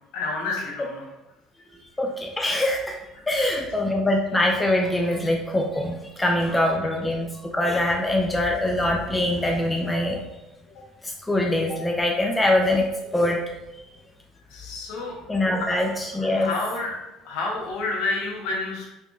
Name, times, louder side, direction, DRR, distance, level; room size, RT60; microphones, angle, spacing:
voice 1, 0.1-1.0 3.3-3.6 6.5-6.6 14.5-15.1 15.6-15.8 16.2-16.9 17.2-18.9, left 3 dB, 65° left, -2 dB, 1.0 m, -29 dB
voice 2, 2.0-3.0 3.3-7.3 7.5-10.2 11.0-12.9 13.1-13.4 15.3-16.5, left 1 dB, 15° left, 1 dB, 0.5 m, -23 dB
3.4 x 3.2 x 2.5 m, 0.95 s
hypercardioid pair, 60°, 0 cm